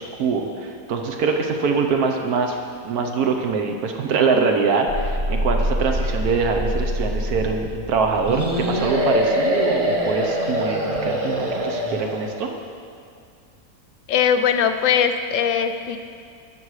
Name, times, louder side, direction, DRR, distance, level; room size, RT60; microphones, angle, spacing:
voice 1, 0.0-2.6 2.8-12.5, right 4 dB, 80° right, 3 dB, 1.3 m, -23 dB
sound 1, 4.9-9.5, equal, 50° right, 1.1 m, -26 dB
sound 2, 8.3-12.4, equal, 30° right, 0.8 m, -23 dB
voice 2, 14.1-16.0, left 7 dB, 70° left, 8 dB, 0.9 m, -20 dB
13.0 x 6.1 x 4.8 m, 2.3 s
omnidirectional pair, 1.6 m